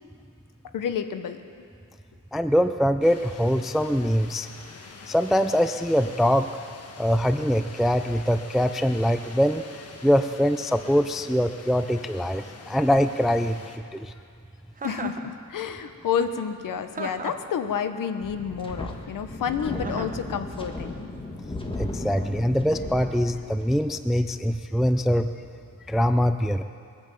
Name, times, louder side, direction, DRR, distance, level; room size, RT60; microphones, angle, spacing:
voice 1, 0.7-1.4 14.8-21.0, left 7 dB, 75° left, 9 dB, 1.0 m, -29 dB
voice 2, 2.3-4.5 5.1-6.5 7.0-9.6 10.0-13.6 13.9-14.1 21.8-25.3 25.9-26.6, equal, ahead, 10 dB, 0.3 m, -23 dB
sound 1, 3.0-13.8, left 4 dB, 50° left, 1.2 m, -46 dB
Chuckle chortle, 14.8-15.3 16.9-17.5 19.8-20.2, right 4 dB, 25° right, 0.8 m, -35 dB
Wind, 18.2-23.8, left 2 dB, 15° left, 1.4 m, -35 dB
21.5 x 8.9 x 7.5 m, 2.5 s
wide cardioid pair, 140°, 33 cm